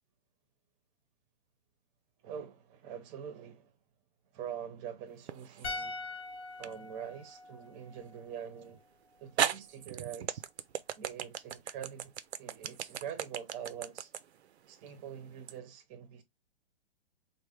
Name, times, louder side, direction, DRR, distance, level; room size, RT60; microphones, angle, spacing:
voice 1, 2.2-3.7 4.3-6.1 6.6-8.8 9.2-10.4 11.0-14.1 14.7-16.2, right 8 dB, 25° right, 0.6 m, -44 dB
sound 1, 5.3-5.9 6.6-6.7 8.6-8.7 9.4-15.6, right 9 dB, 75° right, 0.5 m, -36 dB
sound 2, 5.6-8.9 9.1-9.3, left 3 dB, 80° left, 1.2 m, -43 dB
3.2 x 2.1 x 3.5 m
hypercardioid pair, 130°, 33 cm